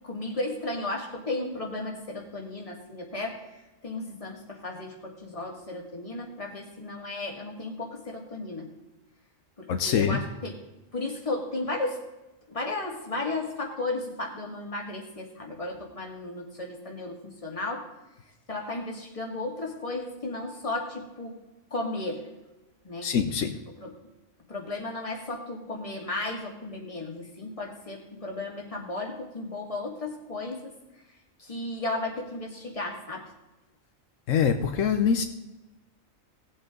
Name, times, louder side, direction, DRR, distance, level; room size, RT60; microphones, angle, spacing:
voice 1, 0.0-8.7 9.6-10.6 10.9-12.0 12.5-17.9 18.5-21.4 21.7-22.3 22.8-23.1 23.8-24.0 24.5-30.7 31.4-33.3, left 2 dB, 25° left, -1 dB, 2.2 m, -34 dB
voice 2, 9.7-10.2 23.0-23.5 34.3-35.3, left 7 dB, 80° left, 7 dB, 1.1 m, -24 dB
18.0 x 7.9 x 3.8 m, 1.0 s
omnidirectional pair, 1.3 m